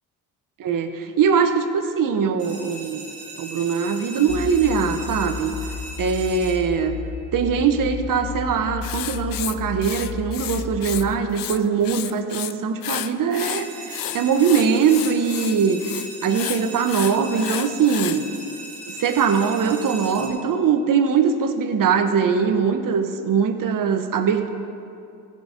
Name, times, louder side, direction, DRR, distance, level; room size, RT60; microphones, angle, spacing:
voice 1, 0.6-3.1 3.4-5.6 6.0-7.0 7.3-15.8 16.2-18.3 18.9-24.5, right 6 dB, 55° right, 8 dB, 1.0 m, -21 dB
sound 1, 2.4-7.3 13.4-20.3, right 2 dB, 75° right, 2.4 m, -39 dB
sound 2, 4.3-11.2, left 7 dB, 80° left, 0.9 m, -33 dB
Writing, 8.8-11.0 11.3-12.5 12.8-18.2, left 13 dB, 60° left, 0.5 m, -31 dB
15.5 x 5.3 x 5.0 m, 2.5 s
supercardioid pair, 55°, 40 cm